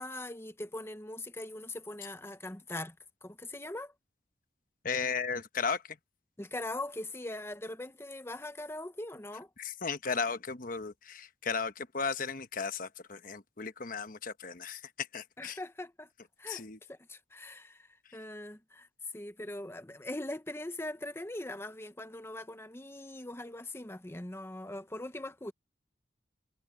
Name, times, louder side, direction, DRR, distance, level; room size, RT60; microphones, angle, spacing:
voice 1, 0.0-3.0 3.2-3.9 6.4-9.5 15.4-16.1 16.4-18.9 19.1-25.5, left 1 dB, 15° left, 0.8 m, -41 dB
voice 2, 4.8-6.0 9.6-15.6 16.5-16.8, left 5 dB, 50° left, 1.1 m, -35 dB
head